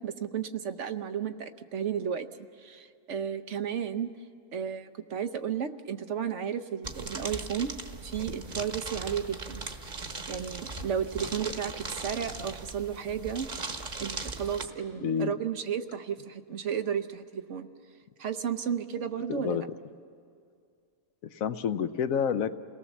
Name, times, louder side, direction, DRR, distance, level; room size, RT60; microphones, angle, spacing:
voice 1, 0.0-2.3 2.6-4.1 4.5-7.7 8.0-9.6 10.3-13.5 14.0-17.7 18.2-19.7, right 8 dB, 60° right, 10 dB, 1.0 m, -33 dB
sound 1, 6.8-14.6, right 3 dB, 35° right, 1.2 m, -39 dB
voice 2, 15.0-15.3 19.3-19.6 21.3-22.5, left 7 dB, 75° left, 12 dB, 1.1 m, -28 dB
28.5 x 18.5 x 7.2 m, 2.3 s
omnidirectional pair, 1.5 m